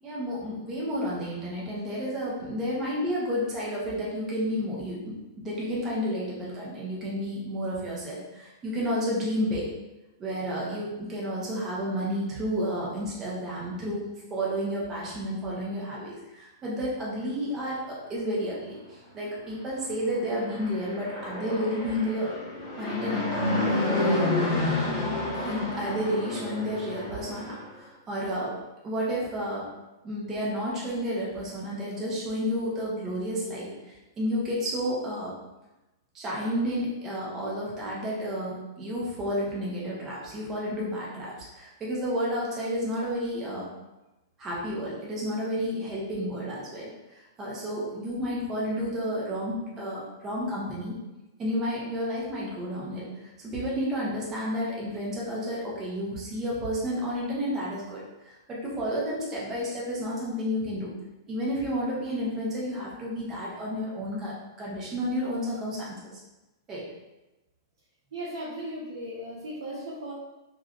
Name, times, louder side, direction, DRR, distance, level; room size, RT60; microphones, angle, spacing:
voice 1, 0.0-9.7 10.2-14.0 14.3-22.3 22.8-24.3 25.4-28.5 28.8-29.7 30.0-35.3 36.1-43.7 44.4-51.0 51.4-60.9 61.3-66.2 66.7-66.9, equal, 15° right, -5 dB, 0.6 m, -31 dB
Fixed-wing aircraft airplane, 20.2-27.6, left 2 dB, 25° left, 0.9 m, -29 dB
voice 2, 68.1-70.1, equal, 85° right, -8 dB, 0.8 m, -36 dB
3.1 x 2.3 x 2.4 m, 1.0 s
hypercardioid pair, 165°, 2 cm